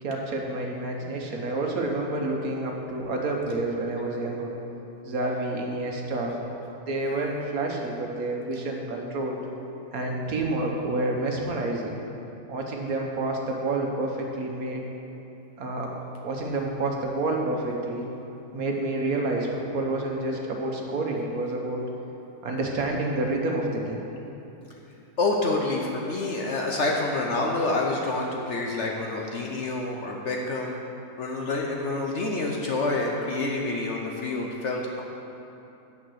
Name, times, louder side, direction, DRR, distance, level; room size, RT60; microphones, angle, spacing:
voice 1, 0.0-4.5 5.0-6.4 6.9-9.4 9.9-12.0 12.5-14.8 15.6-15.9 16.2-18.1 18.5-21.9 22.4-24.1, right 2 dB, 60° right, 0 dB, 1.4 m, -29 dB
voice 2, 25.2-30.8 31.2-35.0, left 2 dB, 55° left, -1 dB, 0.9 m, -27 dB
9.1 x 6.0 x 6.3 m, 2.9 s
omnidirectional pair, 1.8 m